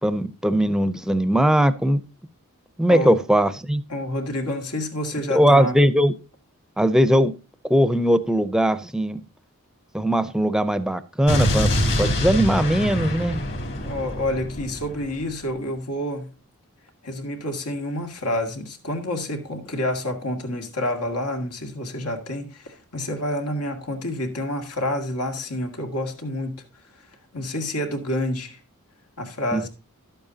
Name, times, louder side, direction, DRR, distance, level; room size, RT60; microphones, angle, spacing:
voice 1, 0.0-2.0 2.8-3.8 5.3-6.1 6.8-7.3 7.7-9.2 9.9-11.7 12.0-13.4 29.5-29.7, equal, 5° right, 0.5 m, -20 dB
voice 2, 3.9-5.8 13.8-16.3 17.0-26.6 27.3-28.6 29.2-29.7, left 1 dB, 90° left, 2.1 m, -28 dB
Explosion, 11.3-15.3, equal, 55° left, 2.6 m, -25 dB
11.5 x 8.9 x 2.7 m
head